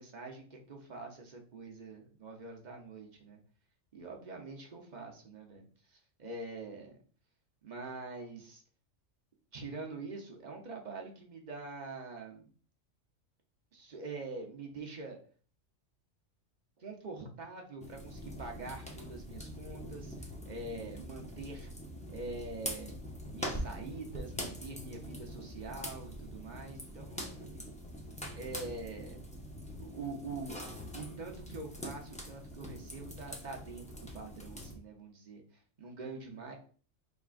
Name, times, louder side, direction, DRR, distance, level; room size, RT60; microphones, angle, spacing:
voice 1, 0.0-3.4 3.9-7.0 7.6-8.6 9.5-12.5 13.7-15.2 16.8-21.7 22.1-22.9 23.3-27.7 28.3-29.2 29.8-30.6 30.9-35.4 35.8-36.5, right 3 dB, 45° right, 2 dB, 0.7 m, -44 dB
sound 1, 17.8-34.7, equal, 10° left, 0.5 m, -44 dB
5.1 x 3.5 x 2.4 m, 0.43 s
omnidirectional pair, 1.3 m